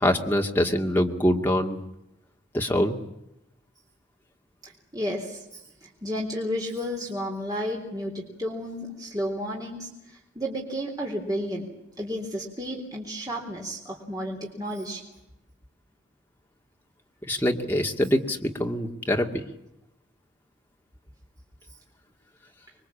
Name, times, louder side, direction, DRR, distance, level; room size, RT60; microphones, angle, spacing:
voice 1, 0.0-1.8 2.5-3.0 17.2-19.4, left 1 dB, 10° left, 1 dB, 2.3 m, -24 dB
voice 2, 4.6-11.7 12.0-15.0, equal, 20° right, -1 dB, 3.7 m, -32 dB
26.5 x 23.0 x 8.6 m, 0.89 s
head